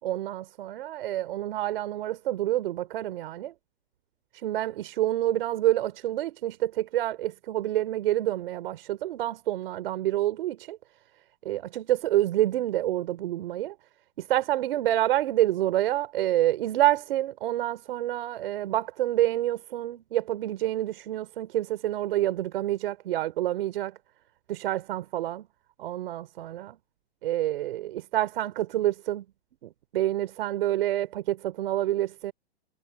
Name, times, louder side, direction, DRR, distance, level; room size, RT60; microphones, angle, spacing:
voice 1, 0.0-3.5 4.3-10.8 11.4-13.8 14.2-24.0 24.5-25.5 25.8-26.8 27.2-29.2 29.6-32.3, right 14 dB, 60° right, 3.8 m, -28 dB
hypercardioid pair, 130°, 31 cm